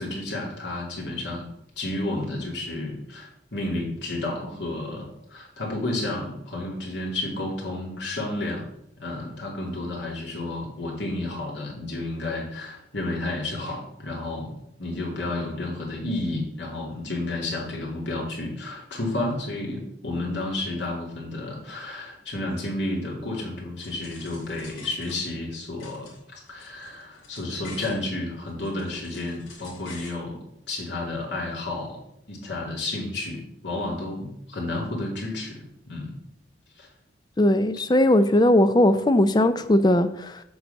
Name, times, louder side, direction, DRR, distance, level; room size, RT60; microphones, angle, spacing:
voice 1, 0.0-1.4 1.8-8.7 9.0-14.5 14.8-30.4 30.7-32.0 32.3-36.1 36.8-36.9, left 2 dB, 65° left, -2 dB, 2.7 m, -31 dB
sound 1, 23.8-25.5 25.8-28.0 28.5-30.2, left 4 dB, 90° left, 2.8 m, -47 dB
voice 2, 37.4-40.4, left 1 dB, 20° left, 11 dB, 0.5 m, -19 dB
7.8 x 4.1 x 6.9 m, 0.79 s
head